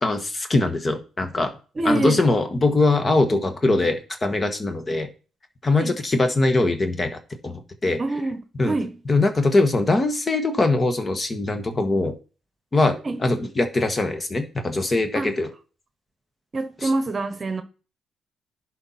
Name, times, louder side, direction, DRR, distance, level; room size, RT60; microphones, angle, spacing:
voice 1, 0.0-1.5 1.8-5.1 5.6-8.0 8.6-8.7 9.1-12.1 12.7-15.5 16.8-16.9, left 2 dB, 30° left, 1.5 m, -22 dB
voice 2, 1.8-2.2 5.8-5.9 8.0-9.0 13.0-13.2 15.1-15.3 16.5-17.6, right 2 dB, 35° right, 1.1 m, -26 dB
11.0 x 4.4 x 4.3 m
cardioid pair, 90°, 0 cm